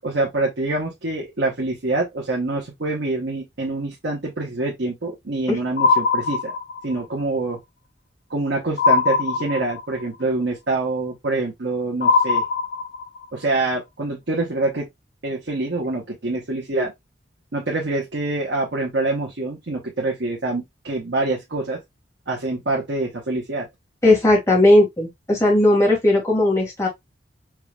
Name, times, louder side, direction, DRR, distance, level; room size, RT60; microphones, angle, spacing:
voice 1, 0.0-6.5 6.8-7.6 8.3-12.4 13.3-14.9 15.2-16.9 17.5-21.8 22.3-23.7, right 2 dB, 85° right, 1.1 m, -25 dB
sound 1, 5.8-7.0 8.8-10.0 12.0-13.2, left 4 dB, 70° left, 1.3 m, -20 dB
voice 2, 24.0-26.9, left 1 dB, 15° left, 2.0 m, -17 dB
4.8 x 3.1 x 2.3 m
head